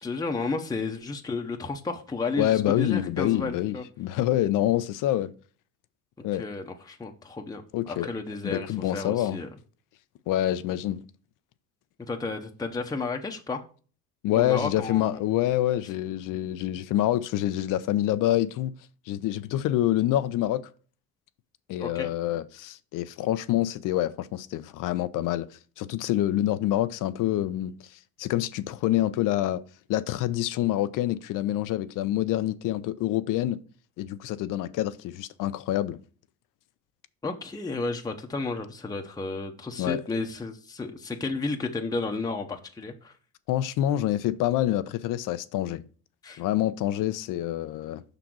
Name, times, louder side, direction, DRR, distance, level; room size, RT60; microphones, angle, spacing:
voice 1, 0.0-3.8 6.4-9.5 12.1-13.6 14.3-15.2 21.8-22.1 37.2-43.1 46.2-46.4, left 3 dB, 10° left, 0.8 m, -32 dB
voice 2, 2.4-5.3 6.2-6.5 7.7-8.1 8.4-9.4 10.3-11.0 14.2-18.7 19.1-20.6 21.7-25.5 25.8-29.6 29.9-33.6 34.0-36.0 39.8-40.0 43.5-45.8 46.4-48.0, left 13 dB, 60° left, 0.6 m, -26 dB
5.8 x 3.9 x 6.0 m
cardioid pair, 100°, 35 cm